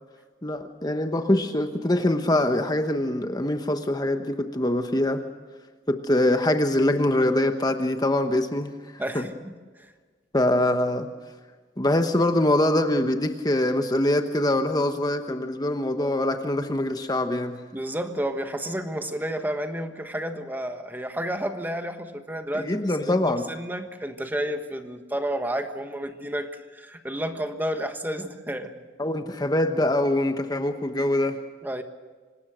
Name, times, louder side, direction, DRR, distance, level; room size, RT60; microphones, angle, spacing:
voice 1, 0.4-5.2 5.9-9.2 10.3-11.1 11.8-17.6 22.5-23.4 29.0-31.4, left 1 dB, 20° left, 7 dB, 1.1 m, -24 dB
voice 2, 9.0-9.9 17.7-28.7 31.6-31.8, right 1 dB, 10° right, 7 dB, 1.3 m, -31 dB
26.0 x 19.5 x 6.3 m, 1.4 s
head